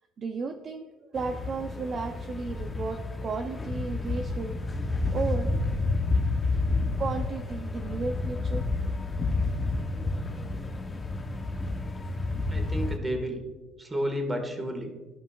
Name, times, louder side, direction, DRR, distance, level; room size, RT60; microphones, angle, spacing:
voice 1, 0.2-4.6 5.1-5.5 7.0-8.7, right 4 dB, 40° right, 5 dB, 0.5 m, -34 dB
sound 1, 1.2-13.0, left 3 dB, 20° left, 0.9 m, -30 dB
voice 2, 12.5-13.4 13.8-14.9, equal, 15° right, 3 dB, 1.6 m, -31 dB
13.5 x 5.4 x 2.4 m, 1.3 s
cardioid pair, 110°, 0 cm